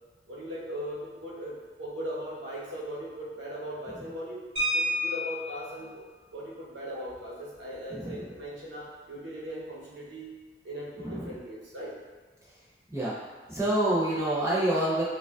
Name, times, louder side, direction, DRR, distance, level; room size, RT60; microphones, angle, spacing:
voice 1, 0.3-4.4 4.7-6.0 6.3-10.4 10.6-12.0 14.1-14.2, equal, 80° right, -5 dB, 1.0 m, -39 dB
sound 1, 4.6-5.6 7.1-7.2 7.5-7.7 8.1-8.4, equal, 30° right, 1.2 m, -30 dB
voice 2, 7.9-8.2 11.0-11.3 12.9-13.1 13.5-15.0, right 1 dB, 15° right, -8 dB, 0.7 m, -27 dB
4.8 x 2.4 x 2.4 m, 1.3 s
head